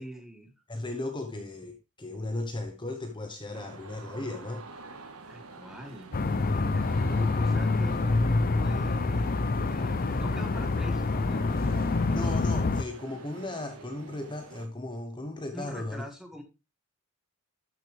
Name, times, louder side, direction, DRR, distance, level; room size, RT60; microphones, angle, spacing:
voice 1, 0.0-0.5 5.3-6.1 6.4-11.5 15.5-16.4, equal, ahead, 1.5 m, -43 dB
voice 2, 0.7-4.6 12.1-16.0, left 2 dB, 20° left, 1.0 m, -36 dB
sound 1, 3.5-14.7, right 3 dB, 75° right, 1.5 m, -47 dB
sound 2, 6.1-12.8, left 3 dB, 40° left, 0.6 m, -26 dB
12.0 x 6.4 x 3.4 m
head